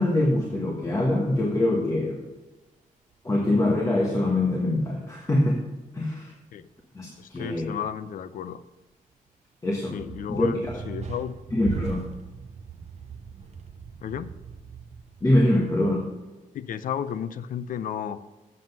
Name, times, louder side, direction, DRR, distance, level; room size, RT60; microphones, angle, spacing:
voice 1, 0.0-2.2 3.2-5.7 5.9-6.3 6.9-7.7 9.6-10.0 10.3-10.7 11.5-12.1 15.2-16.1, left 1 dB, 20° left, -1 dB, 1.3 m, -24 dB
sound 1, 3.1-3.3 8.8-8.9 10.0-15.9, right 6 dB, 50° right, 0.7 m, -39 dB
voice 2, 7.2-8.6 9.9-11.4 14.0-14.4 16.5-18.2, left 8 dB, 70° left, 13 dB, 0.5 m, -33 dB
7.7 x 7.6 x 5.4 m, 1.1 s
wide cardioid pair, 130°, 14 cm